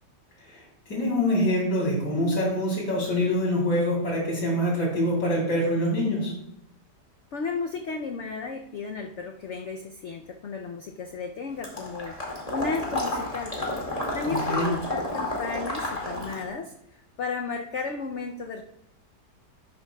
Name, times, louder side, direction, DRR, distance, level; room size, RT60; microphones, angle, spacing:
voice 1, 0.4-6.4 14.3-14.8, left 1 dB, 85° left, -3 dB, 4.1 m, -25 dB
voice 2, 7.3-12.2 12.5-13.6 14.1-16.7 17.2-18.6, left 4 dB, 60° left, 4 dB, 0.7 m, -33 dB
Water / Liquid, 11.6-16.5, left 1 dB, 20° left, 2.2 m, -31 dB
12.0 x 10.5 x 2.3 m, 0.79 s
omnidirectional pair, 1.8 m